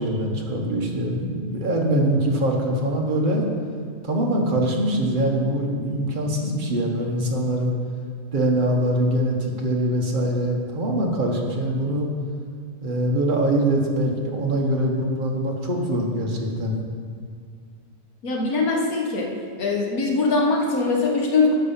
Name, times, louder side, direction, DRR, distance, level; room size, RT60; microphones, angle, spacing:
voice 1, 0.0-3.4 4.0-7.7 8.3-12.1 12.8-16.7, right 1 dB, 35° right, -1 dB, 1.3 m, -23 dB
voice 2, 18.2-19.3 19.6-21.6, left 3 dB, 85° left, 0 dB, 1.8 m, -22 dB
9.5 x 5.5 x 7.2 m, 2.1 s
omnidirectional pair, 1.5 m